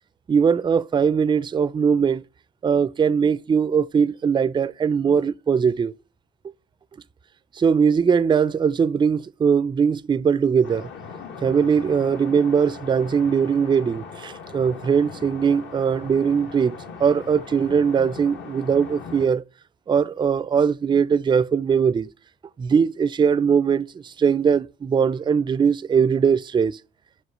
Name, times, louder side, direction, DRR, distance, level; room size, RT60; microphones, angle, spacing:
voice 1, 0.3-2.2 2.6-5.9 7.6-10.9 11.4-19.4 19.9-22.1 22.6-26.8, right 6 dB, 25° right, 0.3 m, -20 dB
sound 1, 10.6-19.3, left 5 dB, 70° left, 1.2 m, -39 dB
5.4 x 5.0 x 6.5 m
cardioid pair, 90°, 20 cm